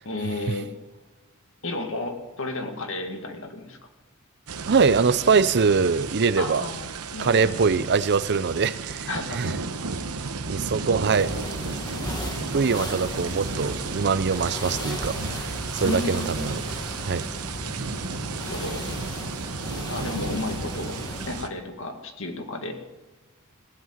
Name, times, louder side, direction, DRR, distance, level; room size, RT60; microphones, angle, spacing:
voice 1, 0.1-0.7 1.6-3.8 6.4-6.9 7.1-7.7 9.1-9.5 11.0-11.5 12.9-13.7 15.8-16.6 18.2-18.8 19.9-21.0 21.3-22.8, left 2 dB, 60° left, 2.0 m, -33 dB
sound 1, 4.5-21.5, right 4 dB, 80° right, 1.0 m, -33 dB
voice 2, 4.7-6.6 7.2-9.1 9.3-9.5 10.5-11.4 12.5-16.6 17.0-17.2, right 5 dB, 50° right, 0.6 m, -23 dB
sound 2, 11.2-21.5, left 1 dB, 20° left, 1.1 m, -36 dB
16.5 x 8.4 x 9.2 m
head